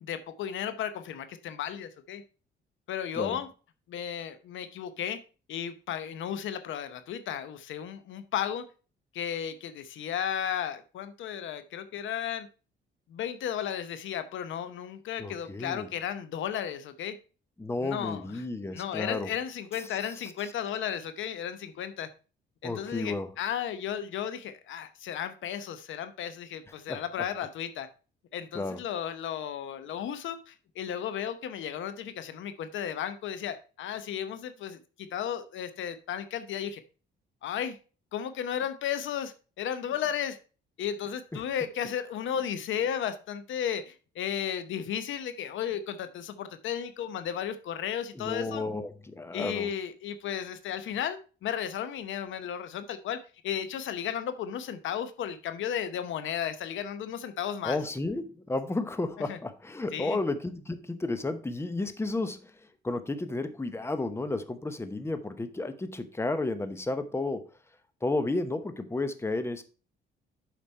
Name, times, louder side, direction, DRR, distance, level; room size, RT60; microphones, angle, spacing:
voice 1, 0.0-2.2 2.9-3.5 3.9-5.2 5.5-8.6 9.1-12.5 13.1-17.2 17.8-18.5 18.7-22.1 22.6-27.9 28.3-36.8 37.4-37.8 38.1-40.4 40.8-48.6 49.3-57.8 59.3-59.4 59.9-60.2, left 9 dB, 75° left, 0.8 m, -34 dB
voice 2, 15.2-15.9 17.6-19.3 22.6-23.3 26.9-27.0 28.5-28.8 41.3-41.4 48.1-49.7 57.6-62.5 62.8-67.5 68.0-69.6, left 2 dB, 15° left, 0.9 m, -32 dB
7.2 x 5.1 x 4.4 m
cardioid pair, 90°, 20 cm